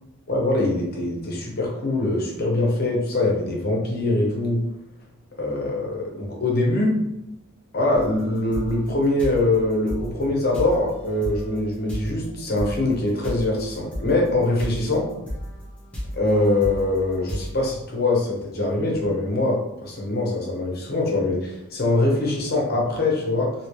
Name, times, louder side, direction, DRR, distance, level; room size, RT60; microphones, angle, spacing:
voice 1, 0.3-4.6 5.4-7.0 7.7-15.1 16.1-23.5, left 2 dB, 50° left, -1 dB, 0.9 m, -23 dB
sound 1, 7.9-17.5, equal, 5° left, 0.9 m, -34 dB
3.0 x 2.8 x 3.0 m, 0.87 s
head